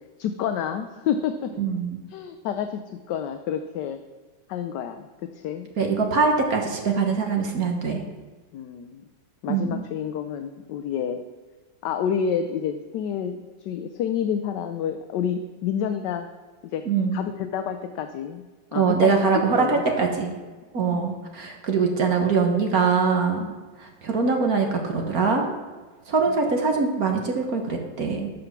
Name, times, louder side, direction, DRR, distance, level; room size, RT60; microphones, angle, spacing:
voice 1, 0.2-1.5 2.1-2.8 3.1-4.0 4.5-5.1 5.4-5.7 8.5-9.0 9.4-11.2 11.8-13.4 13.6-16.3 16.6-16.8 17.1-18.4 18.7-19.3 19.6-20.0, left 8 dB, 70° left, 7 dB, 1.2 m, -28 dB
voice 2, 1.6-2.0 5.8-8.0 9.5-9.8 16.8-17.2 18.7-20.3 20.7-23.5 23.8-25.5 26.1-28.3, right 5 dB, 50° right, 2 dB, 1.5 m, -23 dB
12.5 x 5.2 x 5.8 m, 1.3 s
omnidirectional pair, 2.1 m